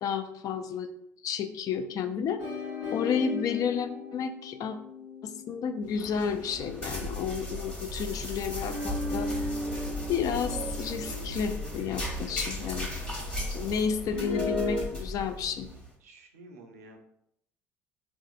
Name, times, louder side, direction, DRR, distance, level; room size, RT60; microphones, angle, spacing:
voice 1, 0.0-0.9 1.2-2.4 2.9-4.8 5.2-9.3 10.1-12.9 13.5-15.7, left 6 dB, 45° left, 9 dB, 0.3 m, -31 dB
sound 1, 2.4-7.0 8.6-12.8 14.1-14.8, left 3 dB, 75° left, 0.7 m, -37 dB
sound 2, 5.9-15.9, left 1 dB, 10° left, 1.0 m, -36 dB
voice 2, 12.6-13.7 16.0-17.0, right 3 dB, 80° right, 3 dB, 0.5 m, -52 dB
3.5 x 2.4 x 2.5 m, 0.73 s
figure-of-eight pair, 60°, 8 cm